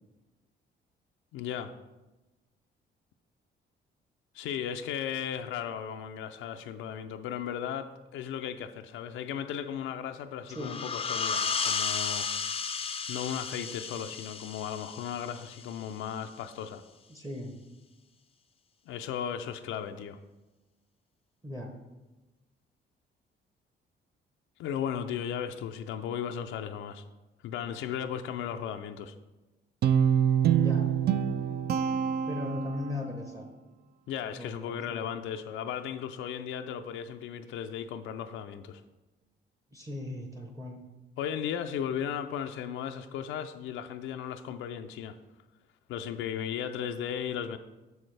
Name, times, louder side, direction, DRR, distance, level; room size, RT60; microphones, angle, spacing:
voice 1, 1.3-1.7 4.3-12.3 13.1-16.8 18.9-20.2 24.6-27.0 27.4-29.1 34.1-38.8 41.2-45.2 45.9-47.6, left 9 dB, 85° left, 6 dB, 0.4 m, -36 dB
sound 1, 10.5-15.9, left 6 dB, 30° left, 0.4 m, -33 dB
voice 2, 17.1-17.6 21.4-21.7 30.6-30.9 31.8-31.9 32.3-33.4 34.3-35.0 39.7-40.9, left 2 dB, 15° right, 2 dB, 0.9 m, -38 dB
Guitar, 29.8-33.1, right 8 dB, 55° right, 0.4 m, -26 dB
6.8 x 6.3 x 3.3 m, 1.1 s
cardioid pair, 90°, 20 cm